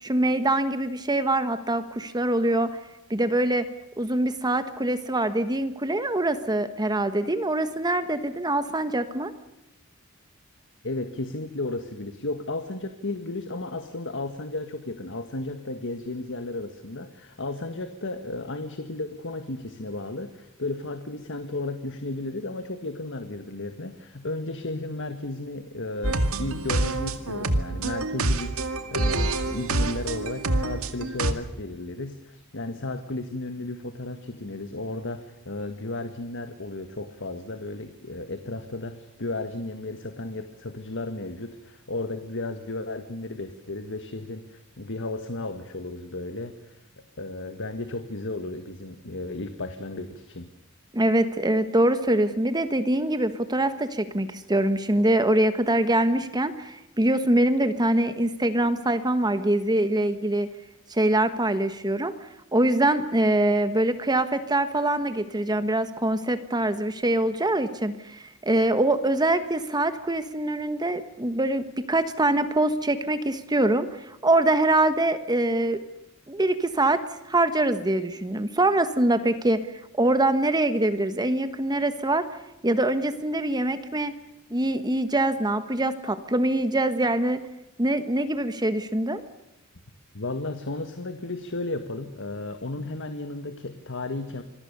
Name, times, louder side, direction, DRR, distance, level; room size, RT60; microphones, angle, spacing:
voice 1, 0.0-2.7 3.1-3.7 4.0-9.3 50.9-60.5 60.9-62.1 62.5-75.8 76.3-79.6 80.0-82.3 82.6-84.1 84.5-87.4 87.8-89.2, right 1 dB, 20° right, 10 dB, 1.3 m, -24 dB
voice 2, 10.8-50.5 90.1-94.4, left 2 dB, 60° left, 8 dB, 1.8 m, -34 dB
sound 1, 26.0-31.3, right 2 dB, 75° right, 2.2 m, -26 dB
27.0 x 21.5 x 6.9 m, 0.92 s
head